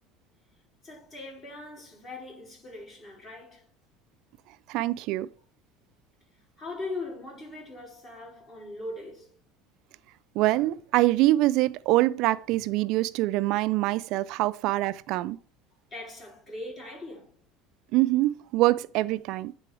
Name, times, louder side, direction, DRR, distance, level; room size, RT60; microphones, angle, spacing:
voice 1, 0.8-3.6 6.6-9.3 15.9-17.3, left 2 dB, 30° left, 3.7 m, -40 dB
voice 2, 4.7-5.3 10.4-15.4 17.9-19.5, right 17 dB, 60° right, 0.3 m, -24 dB
8.9 x 3.8 x 4.8 m
cardioid pair, 135°, 0 cm